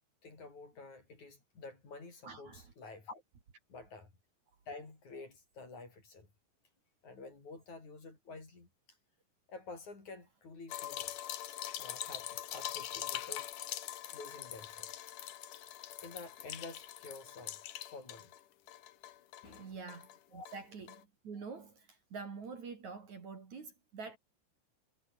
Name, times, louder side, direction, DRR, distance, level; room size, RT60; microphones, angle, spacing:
voice 1, 0.2-3.2 3.7-4.1 4.7-6.3 7.0-8.7 9.5-11.2 11.8-13.5 14.1-14.9 16.0-17.6 17.9-18.4 19.4-19.8 20.3-20.5, left 3 dB, 45° left, 7.5 m, -50 dB
voice 2, 2.2-2.7 19.6-24.2, right 5 dB, 45° right, 4.4 m, -46 dB
sound 1, 10.7-18.4 18.7-20.2 20.5-20.6 20.9-21.0, left 12 dB, 65° left, 2.6 m, -43 dB
omnidirectional pair, 4.7 m